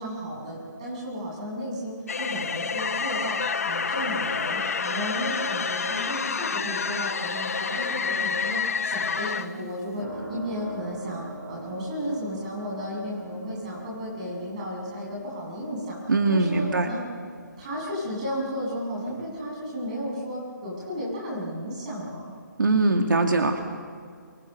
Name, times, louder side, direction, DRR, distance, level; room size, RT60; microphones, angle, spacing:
voice 1, 0.0-16.0 16.3-17.0 17.6-22.3, equal, 20° right, -4 dB, 7.8 m, -33 dB
sound 1, 2.1-9.5, left 5 dB, 45° left, 1.1 m, -28 dB
sound 2, 10.0-19.3, right 2 dB, 60° right, 6.5 m, -43 dB
voice 2, 16.1-17.0 22.6-23.6, right 3 dB, 75° right, 3 dB, 2.5 m, -22 dB
28.0 x 24.0 x 6.8 m, 2.1 s
hypercardioid pair, 180°, 11 cm